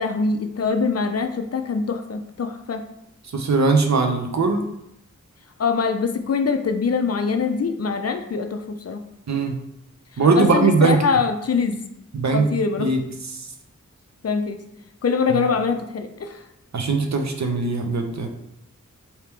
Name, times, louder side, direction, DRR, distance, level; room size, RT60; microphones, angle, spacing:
voice 1, 0.0-2.9 5.6-9.0 10.1-11.8 12.3-12.9 14.2-14.6 15.0-16.4, left 5 dB, 55° left, 7 dB, 0.5 m, -23 dB
voice 2, 3.3-4.7 9.3-9.6 10.2-11.0 12.1-12.5 12.8-13.0 15.3-15.4 16.7-18.3, right 4 dB, 60° right, 4 dB, 0.7 m, -20 dB
3.5 x 2.8 x 4.5 m, 0.79 s
wide cardioid pair, 65°, 31 cm